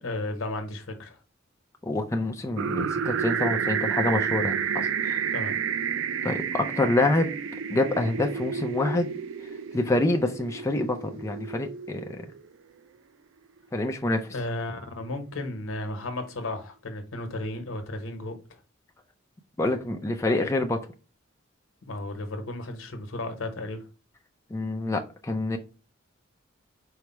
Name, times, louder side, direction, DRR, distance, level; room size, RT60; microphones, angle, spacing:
voice 1, 0.0-1.2 5.3-5.6 14.3-18.6 21.8-23.8, left 2 dB, 85° left, 1.0 m, -34 dB
voice 2, 1.8-5.2 6.2-7.3 7.7-9.1 9.7-12.2 13.7-14.3 19.6-20.9 24.5-25.6, left 2 dB, 15° left, 0.4 m, -26 dB
sound 1, 2.6-12.5, right 7 dB, 70° right, 0.4 m, -30 dB
4.6 x 2.0 x 4.2 m
head